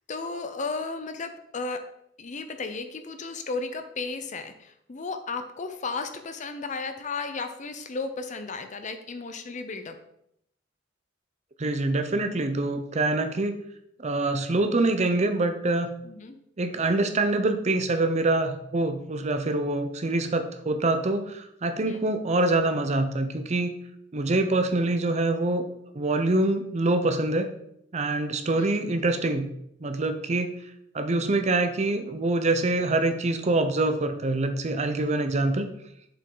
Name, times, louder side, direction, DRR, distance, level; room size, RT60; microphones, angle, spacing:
voice 1, 0.1-1.8 2.2-10.0 16.0-16.4 21.8-22.1 28.5-28.8, left 4 dB, 40° left, 8 dB, 0.6 m, -34 dB
voice 2, 11.6-13.6 14.0-15.9 16.6-23.7 24.1-25.6 25.9-27.5 27.9-29.5 29.8-30.5 30.9-35.7, right 2 dB, 35° right, 8 dB, 0.6 m, -25 dB
7.0 x 5.4 x 3.8 m, 0.74 s
head